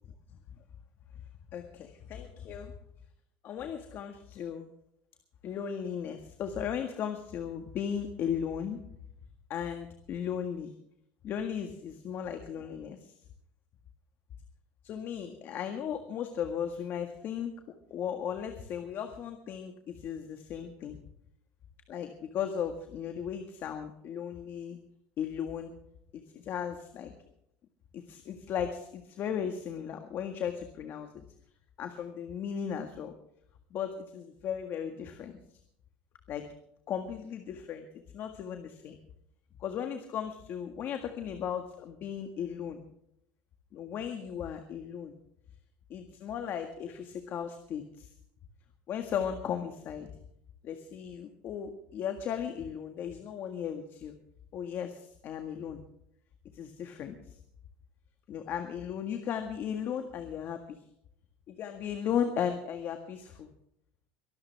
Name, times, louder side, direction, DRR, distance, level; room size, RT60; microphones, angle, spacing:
voice 1, 1.5-2.8 3.4-4.7 5.4-8.8 9.5-10.7 11.2-13.1 14.8-17.5 17.9-21.0 21.9-24.8 25.2-25.7 26.1-27.1 27.9-31.2 31.8-33.1 33.7-35.4 36.3-36.4 36.9-37.9 38.1-39.0 39.6-42.8 43.7-45.1 45.9-48.1 48.9-50.1 50.6-54.1 54.5-55.8 56.5-57.4 58.3-60.8 61.5-63.5, left 8 dB, 45° left, 6 dB, 1.7 m, -36 dB
23.5 x 13.0 x 3.5 m, 0.71 s
cardioid pair, 145°, 5 cm